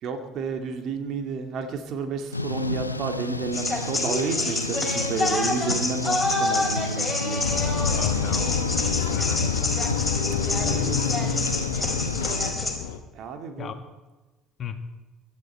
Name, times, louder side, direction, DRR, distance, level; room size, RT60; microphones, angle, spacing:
voice 1, 0.0-7.4 10.6-11.6 13.1-13.8, right 5 dB, 50° right, 6 dB, 2.1 m, -31 dB
Thunder / Rain, 2.3-12.5, left 2 dB, 90° left, 0.6 m, -31 dB
sound 1, 3.5-12.7, left 2 dB, 10° left, 4.8 m, -27 dB
sound 2, 7.4-13.0, left 10 dB, 65° left, 1.0 m, -28 dB
voice 2, 7.7-9.9 13.6-13.7 14.6-14.8, left 7 dB, 40° left, 8 dB, 1.7 m, -36 dB
25.0 x 12.0 x 4.4 m, 1.2 s
figure-of-eight pair, 55°, 0 cm